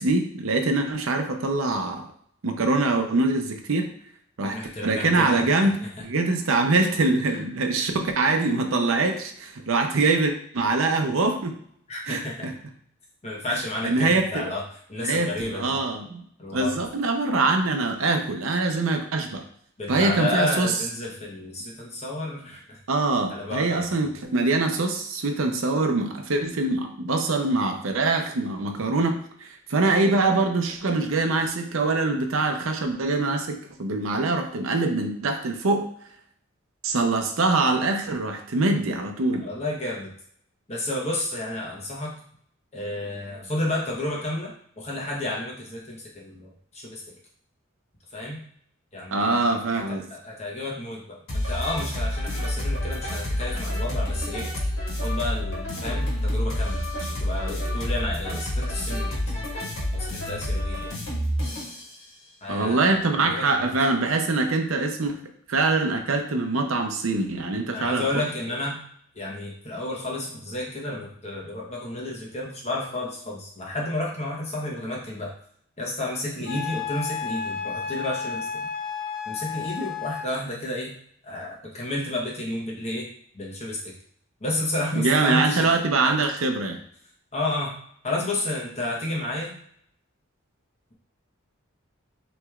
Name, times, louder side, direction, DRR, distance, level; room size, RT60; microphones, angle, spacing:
voice 1, 0.0-2.1 2.4-3.9 4.4-5.7 6.0-11.6 12.1-12.5 13.8-14.5 15.0-16.2 16.5-19.4 19.9-20.7 22.9-35.9 36.8-39.4 49.1-50.1 62.5-65.2 65.5-68.0 76.5-76.6 85.0-86.8, right 3 dB, 75° right, 4 dB, 0.6 m, -24 dB
voice 2, 4.4-5.4 5.8-5.9 7.3-7.4 11.9-12.5 13.2-14.6 14.9-15.8 16.4-16.8 19.8-22.8 23.3-24.1 39.4-40.1 40.7-42.1 42.7-47.1 48.1-48.4 48.9-49.4 49.9-54.5 55.0-59.2 59.9-61.0 62.4-62.8 63.2-63.7 67.7-68.8 69.1-75.3 75.8-78.7 79.3-80.9 81.2-83.1 83.3-83.9 84.4-85.8 86.0-86.2 87.3-87.8 88.0-89.6, left 1 dB, 30° left, -3 dB, 1.0 m, -31 dB
sound 1, 51.3-61.9, left 1 dB, 75° left, 1.6 m, -28 dB
Wind instrument woodwind instrument, 76.5-80.3, left 6 dB, 45° left, 0.5 m, -32 dB
6.0 x 3.1 x 2.4 m, 0.64 s
head